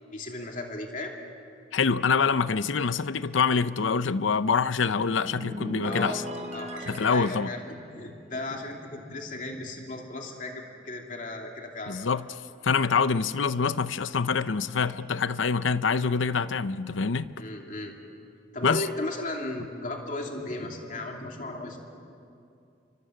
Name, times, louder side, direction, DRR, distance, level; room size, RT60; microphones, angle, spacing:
voice 1, 0.1-1.2 5.8-6.2 6.5-12.2 17.4-18.0 18.5-21.8, left 2 dB, 40° left, 2.8 m, -36 dB
voice 2, 1.7-6.2 6.9-7.5 11.9-17.4 18.6-18.9, left 5 dB, 85° left, 0.7 m, -25 dB
sound 1, 4.8-9.4 9.7-10.0, equal, 35° right, 3.1 m, -39 dB
28.5 x 24.5 x 7.8 m
head